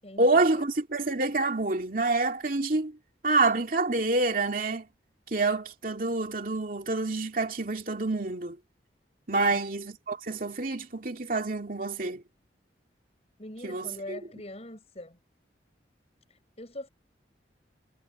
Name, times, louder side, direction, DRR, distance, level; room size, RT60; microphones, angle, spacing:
voice 1, 0.2-3.0 3.2-4.9 5.3-8.6 9.3-12.2 13.6-14.2, right 3 dB, 50° right, 2.6 m, -27 dB
voice 2, 13.4-15.2 16.6-16.9, left 1 dB, 35° left, 6.7 m, -42 dB
head